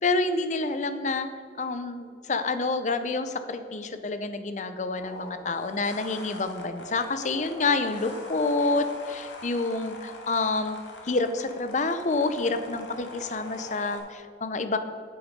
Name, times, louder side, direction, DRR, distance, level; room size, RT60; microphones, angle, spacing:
voice 1, 0.0-1.3 1.6-14.8, left 3 dB, 40° left, 10 dB, 0.6 m, -28 dB
sound 1, 5.0-14.0, left 2 dB, 85° left, 1.6 m, -43 dB
8.7 x 6.2 x 5.2 m, 2.3 s
head